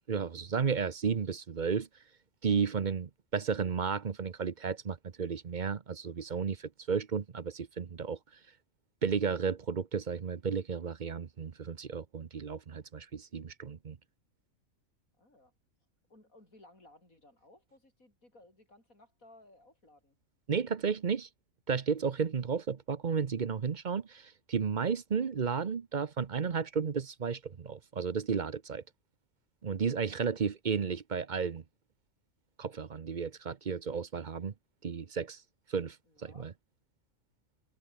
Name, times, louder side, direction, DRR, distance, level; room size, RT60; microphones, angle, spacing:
voice 1, 0.1-1.9 2.4-8.2 9.0-14.0 20.5-21.3 21.7-28.8 29.6-31.6 32.6-34.5 34.8-35.4 35.7-36.0 36.2-36.5, right 6 dB, 40° right, 0.8 m, -33 dB
voice 2, 15.2-15.5 16.1-20.2 24.8-24.9 30.0-30.2 30.6-30.8 33.7-34.1 34.4-34.6 36.0-36.5, left 1 dB, 85° left, 8.2 m, -60 dB
omnidirectional pair, 1.4 m